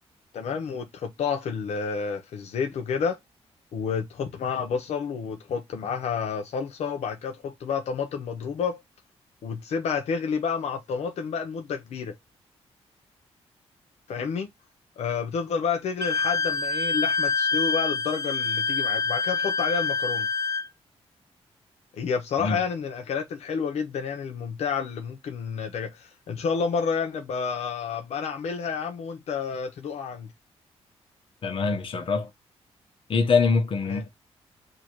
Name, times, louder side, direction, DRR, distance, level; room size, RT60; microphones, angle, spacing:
voice 1, 0.3-3.2 3.7-8.8 9.4-12.1 14.1-14.5 15.0-20.3 22.0-30.3 33.9-34.0, left 6 dB, 80° left, 0.8 m, -30 dB
Wind instrument woodwind instrument, 16.0-20.7, left 4 dB, 30° left, 0.4 m, -26 dB
voice 2, 31.4-32.3 33.1-34.1, left 4 dB, 50° left, 1.0 m, -24 dB
2.9 x 2.8 x 4.4 m
cardioid pair, 100°, 11 cm